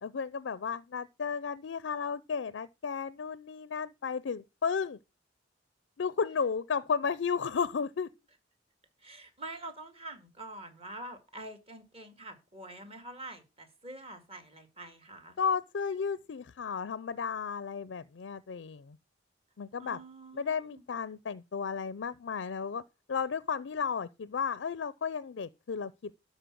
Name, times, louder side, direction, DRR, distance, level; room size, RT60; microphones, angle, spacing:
voice 1, 0.0-5.0 6.0-8.1 15.4-19.0 19.6-20.0 20.3-22.8 23.1-26.1, left 6 dB, 70° left, 0.4 m, -33 dB
voice 2, 9.0-15.4 19.8-20.8, right 2 dB, 30° right, 2.0 m, -46 dB
12.0 x 4.2 x 7.6 m
head